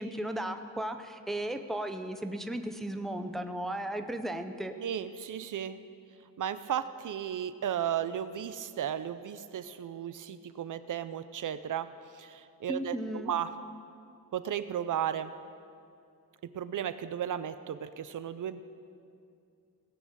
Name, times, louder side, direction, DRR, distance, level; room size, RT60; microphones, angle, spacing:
voice 1, 0.0-4.7 12.7-13.3, right 1 dB, ahead, 7 dB, 0.5 m, -35 dB
voice 2, 4.8-5.8 6.4-13.5 14.3-15.3 16.5-18.6, right 9 dB, 60° right, 13 dB, 0.6 m, -34 dB
17.5 x 8.6 x 7.3 m, 2.5 s
wide cardioid pair, 170°, 36 cm